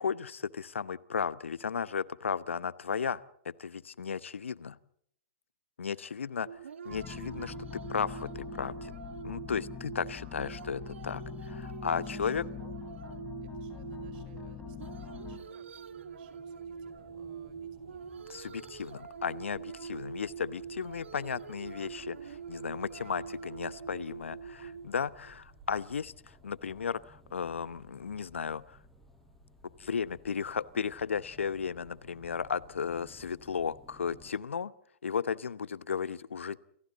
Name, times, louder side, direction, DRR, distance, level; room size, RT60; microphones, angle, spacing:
voice 1, 0.0-4.8 5.8-6.5 6.8-8.9 9.2-12.4 18.3-28.8 29.8-34.7 35.0-36.6, left 6 dB, 80° left, 17 dB, 1.0 m, -35 dB
sound 1, 6.4-26.0, right 6 dB, 75° right, 1.5 m, -44 dB
sound 2, 6.9-15.4, left 8 dB, 20° left, 4.9 m, -43 dB
voice 2, 13.4-18.0 22.9-23.4, right 11 dB, 50° right, 11 dB, 4.9 m, -62 dB
sound 3, 15.2-34.3, left 1 dB, 5° left, 7.9 m, -59 dB
29.5 x 27.5 x 4.1 m, 0.70 s
hypercardioid pair, 120°, 7 cm